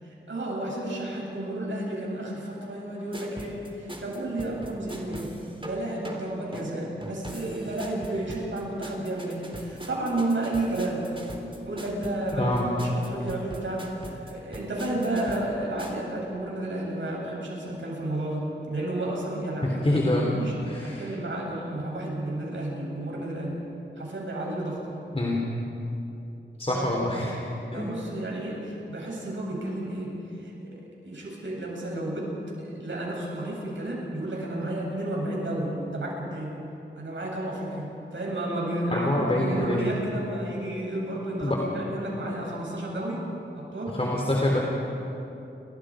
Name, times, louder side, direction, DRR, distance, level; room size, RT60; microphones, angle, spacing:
voice 1, 0.0-5.3 5.6-11.2 11.6-20.6 20.8-23.6 24.0-24.8 26.7-27.0 27.7-36.5 37.0-43.3 43.6-43.9, right 1 dB, 75° right, -3 dB, 7.8 m, -32 dB
sound 1, 3.1-16.1, right 1 dB, 25° right, 3.8 m, -41 dB
voice 2, 19.6-20.2 20.6-21.1 25.1-25.4 26.6-27.4 27.7-27.9 38.9-39.8 41.4-41.6 43.9-44.6, left 1 dB, 30° left, -2 dB, 3.7 m, -25 dB
30.0 x 25.0 x 5.2 m, 3.0 s
wide cardioid pair, 65°, 20 cm